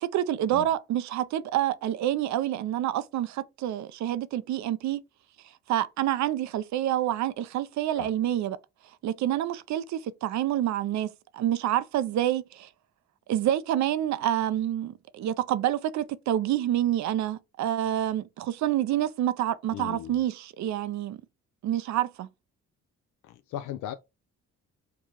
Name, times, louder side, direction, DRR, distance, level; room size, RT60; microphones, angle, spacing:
voice 1, 0.0-5.0 5.7-8.6 9.0-12.7 13.3-21.2 21.6-22.3, right 12 dB, 65° right, 0.5 m, -27 dB
voice 2, 19.7-20.2 23.2-23.9, left 12 dB, 85° left, 0.5 m, -37 dB
4.6 x 2.3 x 2.9 m
cardioid pair, 90°, 30 cm